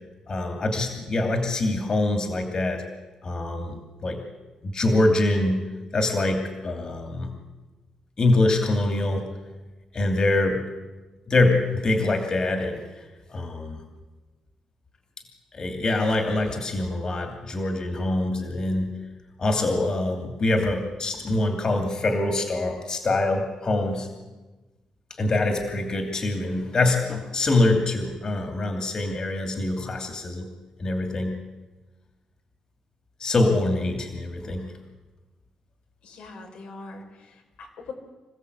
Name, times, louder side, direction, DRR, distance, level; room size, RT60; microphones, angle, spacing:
voice 1, 0.3-2.8 3.2-4.2 4.6-5.7 5.9-7.3 8.2-9.3 9.9-10.6 11.3-12.8 13.3-13.8 15.5-19.0 19.4-24.1 25.2-30.5 30.8-31.4 33.2-34.7, left 2 dB, 35° left, 4 dB, 2.7 m, -24 dB
voice 2, 36.0-37.9, left 3 dB, 90° left, 2 dB, 5.1 m, -42 dB
26.5 x 16.0 x 8.2 m, 1.2 s
wide cardioid pair, 150°, 2 cm